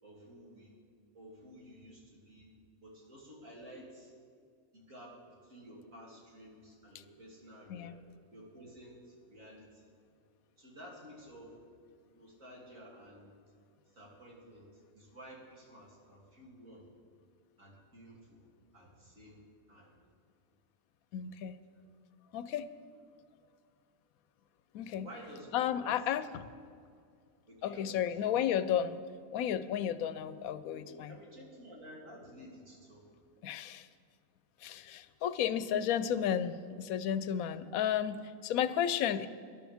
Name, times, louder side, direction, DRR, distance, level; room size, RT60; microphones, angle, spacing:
voice 1, 0.0-0.7 1.1-2.5 2.8-4.1 4.7-5.2 5.4-8.0 8.3-9.9 10.6-11.5 12.1-13.3 13.9-16.9 17.6-18.5 18.7-19.4 19.7-19.9 21.7-21.9 25.0-26.0 27.5-28.3 30.6-33.1, equal, 70° right, -4 dB, 3.2 m, -53 dB
voice 2, 21.1-21.6 22.3-22.7 24.7-25.1 25.5-26.3 27.6-29.0 29.3-31.2 33.4-33.9 34.6-39.3, left 9 dB, 85° left, 14 dB, 1.0 m, -33 dB
20.0 x 11.5 x 3.5 m, 2.3 s
omnidirectional pair, 1.5 m